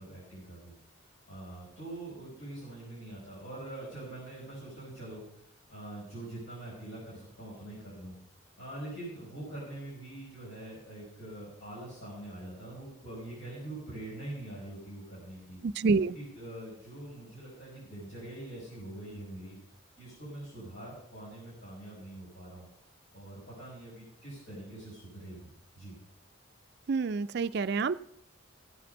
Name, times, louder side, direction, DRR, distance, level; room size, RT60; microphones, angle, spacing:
voice 1, 0.0-8.1 8.6-15.8 16.1-19.6 20.0-22.7 23.1-25.5 25.8-26.0, right 1 dB, 65° left, -7 dB, 5.5 m, -44 dB
voice 2, 15.6-16.1 26.9-27.9, right 4 dB, 50° right, 12 dB, 0.3 m, -27 dB
15.5 x 7.8 x 5.4 m, 0.74 s
head